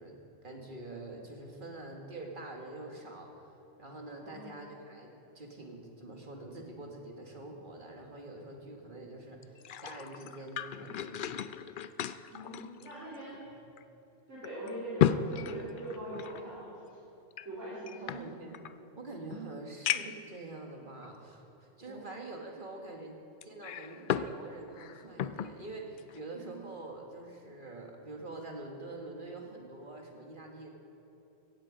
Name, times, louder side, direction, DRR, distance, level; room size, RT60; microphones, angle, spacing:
voice 1, 0.0-3.5 3.8-11.5 13.4-13.5 18.0-18.6 19.0-23.2 23.4-30.7, right 2 dB, 45° right, 1 dB, 1.9 m, -45 dB
voice 2, 4.2-4.5 12.3-13.4 14.3-17.0 17.4-18.2 21.8-22.0, right 1 dB, 85° right, -10 dB, 4.1 m, -42 dB
sound 1, 9.4-13.4 13.8-13.9 14.4-16.4 17.3-18.7 19.3-19.4 19.8-20.3 21.0-21.1 23.4-24.4 24.7-25.5 26.0-26.2, left 9 dB, 60° left, 0.6 m, -34 dB
16.5 x 15.5 x 5.0 m, 3.0 s
omnidirectional pair, 1.2 m